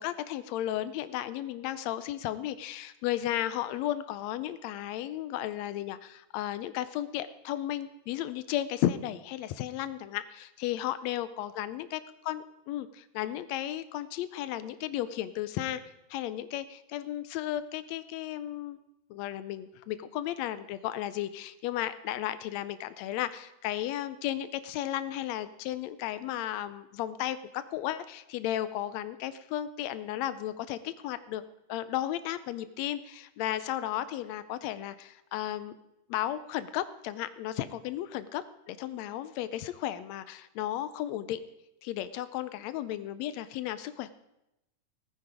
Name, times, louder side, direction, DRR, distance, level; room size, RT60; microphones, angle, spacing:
voice 1, 0.0-15.8 16.1-18.8 19.1-31.4 31.7-35.7 36.1-41.4 41.8-44.1, left 12 dB, 80° left, 13 dB, 1.5 m, -34 dB
16.5 x 9.5 x 4.9 m, 0.89 s
omnidirectional pair, 3.7 m